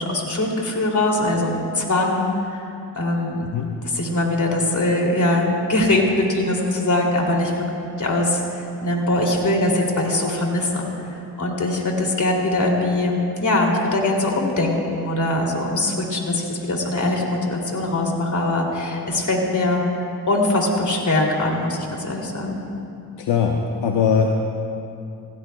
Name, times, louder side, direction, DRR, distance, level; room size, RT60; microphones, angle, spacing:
voice 1, 0.0-2.6 3.0-3.5 3.8-7.5 8.0-10.9 11.4-19.8 20.3-22.6, left 2 dB, 45° left, 0 dB, 2.8 m, -22 dB
voice 2, 23.2-24.3, left 6 dB, 75° left, 2 dB, 0.9 m, -20 dB
18.0 x 16.0 x 2.3 m, 2.6 s
cardioid pair, 55°, 41 cm